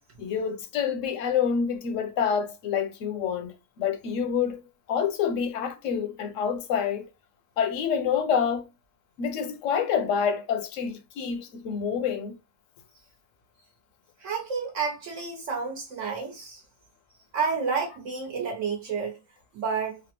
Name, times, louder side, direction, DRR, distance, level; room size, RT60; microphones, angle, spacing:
voice 1, 0.2-4.6 4.9-7.1 7.6-8.7 9.2-12.4, left 7 dB, 75° left, 1.0 m, -27 dB
voice 2, 14.2-16.6 17.3-19.2 19.5-20.0, right 5 dB, 70° right, 1.2 m, -30 dB
3.4 x 2.1 x 2.9 m
omnidirectional pair, 1.4 m